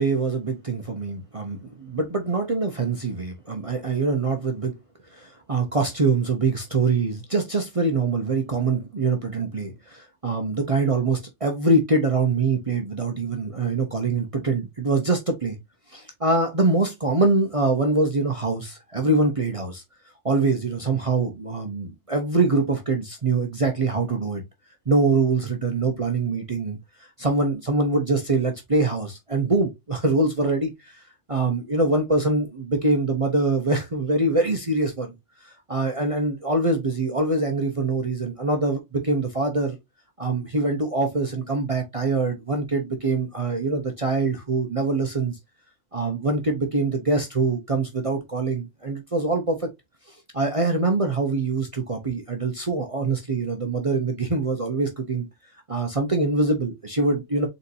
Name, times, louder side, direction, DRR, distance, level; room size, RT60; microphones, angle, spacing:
voice 1, 0.0-4.8 5.1-15.6 15.9-19.8 20.2-24.4 24.9-26.8 27.2-31.0 31.3-35.1 35.4-39.8 40.2-45.4 45.9-49.7 50.1-55.3 55.7-57.5, right 3 dB, 30° right, 0.8 m, -24 dB
4.1 x 4.0 x 2.7 m
omnidirectional pair, 1.3 m